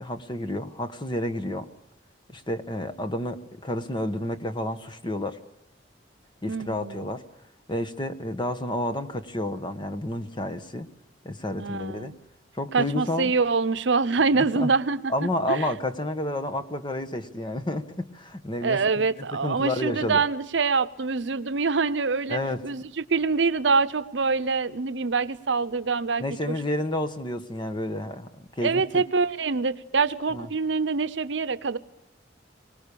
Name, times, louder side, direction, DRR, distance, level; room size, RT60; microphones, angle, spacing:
voice 1, 0.0-1.7 2.3-5.4 6.4-7.2 7.7-10.9 11.2-12.1 12.5-13.3 14.4-14.7 15.1-19.1 19.4-20.2 22.3-22.6 26.2-28.3 28.5-29.0 30.3-30.5, left 1 dB, 25° left, 9 dB, 1.2 m, -30 dB
voice 2, 6.5-7.1 11.6-12.2 12.7-15.1 15.5-15.7 18.6-26.5 28.6-31.8, right 4 dB, 75° right, 13 dB, 0.8 m, -25 dB
25.0 x 19.5 x 6.9 m, 0.83 s
head